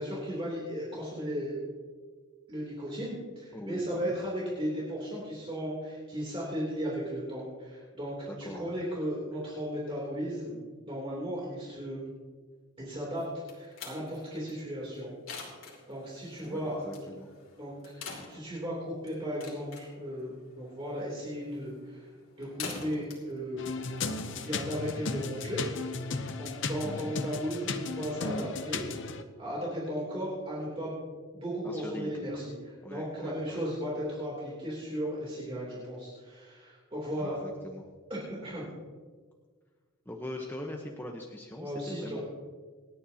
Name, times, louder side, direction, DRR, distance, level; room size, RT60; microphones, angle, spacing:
voice 1, 0.0-1.6 2.5-10.6 10.9-12.0 12.8-13.2 13.5-15.1 15.9-17.1 17.6-22.1 22.4-23.6 24.3-25.6 26.4-29.1 29.4-31.0 31.3-37.4 38.1-38.7 41.5-42.2, equal, 25° right, -6 dB, 3.1 m, -36 dB
voice 2, 3.5-4.1 8.2-8.7 16.4-17.3 26.8-27.1 31.6-32.3 32.8-33.6 37.2-37.9 40.1-42.2, left 1 dB, 10° left, 0 dB, 1.0 m, -41 dB
sound 1, 13.2-24.6, left 4 dB, 75° left, 2.8 m, -46 dB
sound 2, 23.6-29.2, left 4 dB, 60° left, 0.8 m, -35 dB
27.5 x 9.8 x 2.9 m, 1.5 s
head